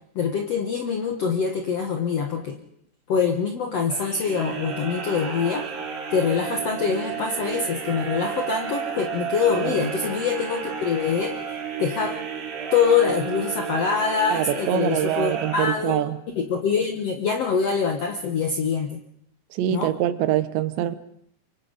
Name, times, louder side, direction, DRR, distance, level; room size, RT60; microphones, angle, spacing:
voice 1, 0.1-2.6 3.1-5.7 6.1-11.4 11.8-12.2 12.7-16.0 16.3-19.0 19.7-19.9, left 6 dB, 85° left, 1.3 m, -24 dB
sound 1, 3.9-16.2, right 7 dB, 60° right, 4.5 m, -32 dB
voice 2, 14.3-16.2 19.5-21.0, right 12 dB, 85° right, 3.3 m, -24 dB
25.5 x 24.0 x 5.3 m
omnidirectional pair, 5.0 m